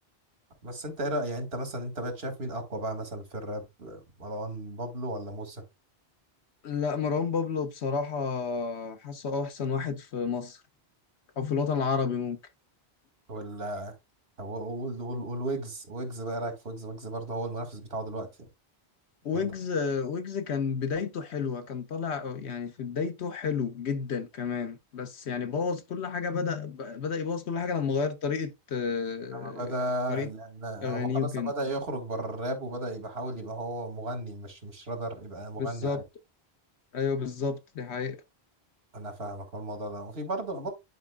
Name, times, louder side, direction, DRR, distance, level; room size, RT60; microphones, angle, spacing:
voice 1, 0.6-5.6 13.3-13.9 14.4-18.5 19.3-19.5 29.3-36.0 38.9-40.7, right 1 dB, 70° right, 2.0 m, -35 dB
voice 2, 6.6-10.6 11.4-12.4 19.2-29.7 30.1-30.3 30.8-31.5 35.6-36.0 36.9-38.2, left 5 dB, 85° left, 1.2 m, -31 dB
10.5 x 4.7 x 2.3 m
omnidirectional pair, 1.1 m